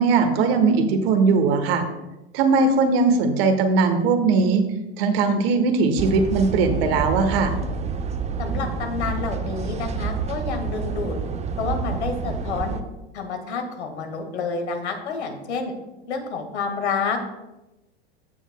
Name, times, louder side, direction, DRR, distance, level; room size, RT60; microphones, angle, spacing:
voice 1, 0.0-1.8 2.3-4.6 5.0-7.5, right 4 dB, 60° right, 8 dB, 1.3 m, -19 dB
sound 1, 6.0-12.8, right 4 dB, 20° right, 0.6 m, -28 dB
voice 2, 8.4-11.1 11.6-12.8 13.1-15.7 16.1-17.2, left 4 dB, 80° left, 5 dB, 1.9 m, -29 dB
15.0 x 6.4 x 2.2 m, 0.99 s
hypercardioid pair, 100°, 33 cm